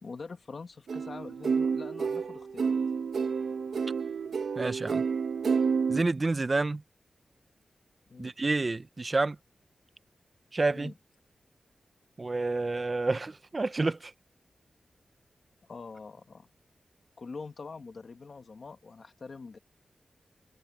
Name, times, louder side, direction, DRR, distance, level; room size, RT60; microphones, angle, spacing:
voice 1, 0.0-2.8 8.1-8.3 10.7-10.9 15.7-16.5 17.2-19.6, left 4 dB, 55° left, 1.7 m, -44 dB
sound 1, 0.9-6.0, right 5 dB, 90° right, 0.9 m, -29 dB
voice 2, 4.6-5.0 5.9-6.8 8.2-9.4 10.5-10.9 12.2-14.1, right 3 dB, 35° right, 0.7 m, -29 dB
wide cardioid pair, 115°, 0 cm